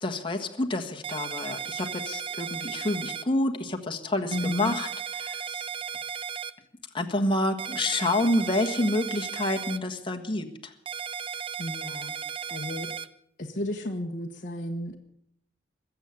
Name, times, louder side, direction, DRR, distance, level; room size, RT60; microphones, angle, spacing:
voice 1, 0.0-4.9 5.2-5.7 6.9-10.7, left 1 dB, 30° left, 3 dB, 1.5 m, -28 dB
sound 1, 1.0-3.2 4.3-6.5 7.6-9.8 10.9-13.1, right 8 dB, 30° right, 0.6 m, -35 dB
voice 2, 4.3-4.8 11.6-12.1 12.5-12.9 13.4-15.0, left 1 dB, 45° left, -1 dB, 1.2 m, -33 dB
21.0 x 8.2 x 8.2 m, 0.71 s
head